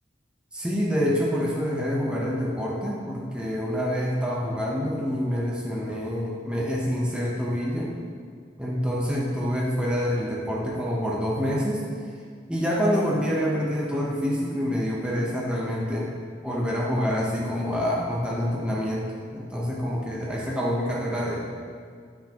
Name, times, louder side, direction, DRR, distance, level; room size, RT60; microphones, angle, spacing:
voice 1, 0.5-7.9 8.6-11.8 12.5-16.1 16.4-19.1 19.3-21.4, equal, 5° right, -4 dB, 0.8 m, -26 dB
9.2 x 6.0 x 2.9 m, 2.1 s
head